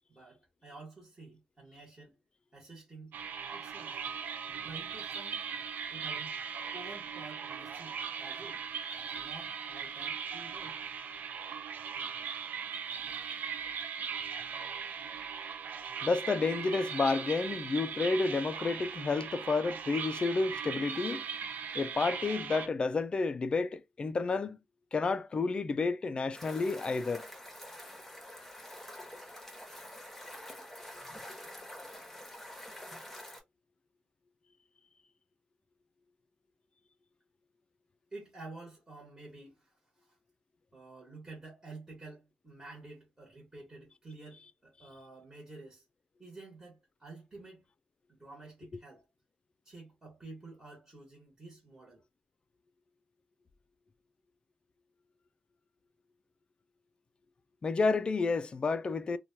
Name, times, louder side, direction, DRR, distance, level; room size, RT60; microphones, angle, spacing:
voice 1, 0.1-2.1 2.5-3.2 3.5-4.0 4.6-5.5 5.9-6.4 6.7-8.6 9.1-10.8 38.1-40.2 40.7-45.8 46.2-47.7 48.1-49.1 49.6-52.0, right 3 dB, 20° right, 1.3 m, -50 dB
sound 1, 3.1-22.7, right 6 dB, 75° right, 0.4 m, -39 dB
voice 2, 16.0-21.2 21.7-24.6 24.9-27.3 57.6-59.2, left 4 dB, 35° left, 0.3 m, -30 dB
sound 2, 26.3-33.4, left 1 dB, 5° left, 1.0 m, -47 dB
2.9 x 2.2 x 2.6 m
wide cardioid pair, 125°, 3 cm